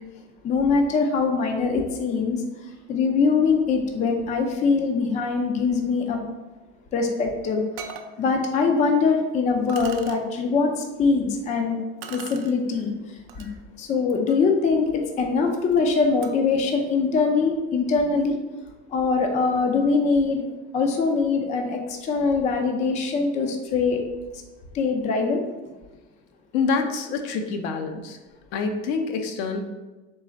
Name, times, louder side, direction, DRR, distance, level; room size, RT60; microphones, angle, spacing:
voice 1, 0.4-2.4 2.9-6.2 6.9-7.6 8.2-11.8 12.1-13.5 13.8-18.3 18.9-20.5 20.7-24.0 24.7-25.4, left 4 dB, 20° left, 3 dB, 0.4 m, -23 dB
sound 1, 7.2-7.3 7.8-8.1 9.0-9.1 9.7-10.2 12.0-12.5 13.3-13.5 14.0-16.5, right 7 dB, 60° right, 0.5 m, -42 dB
voice 2, 26.5-28.2 28.5-29.6, left 4 dB, 70° left, 5 dB, 0.7 m, -26 dB
3.8 x 3.2 x 3.9 m, 1.2 s
supercardioid pair, 140°, 33 cm